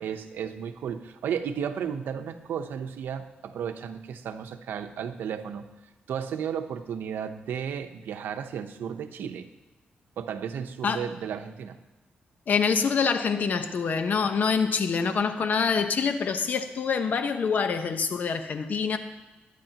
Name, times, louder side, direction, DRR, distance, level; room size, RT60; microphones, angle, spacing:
voice 1, 0.0-5.7 6.1-9.5 10.2-11.8, right 8 dB, 85° right, 8 dB, 0.8 m, -33 dB
voice 2, 12.5-19.0, left 5 dB, 55° left, 8 dB, 1.0 m, -25 dB
21.0 x 9.6 x 2.9 m, 1.1 s
cardioid pair, 100°, 3 cm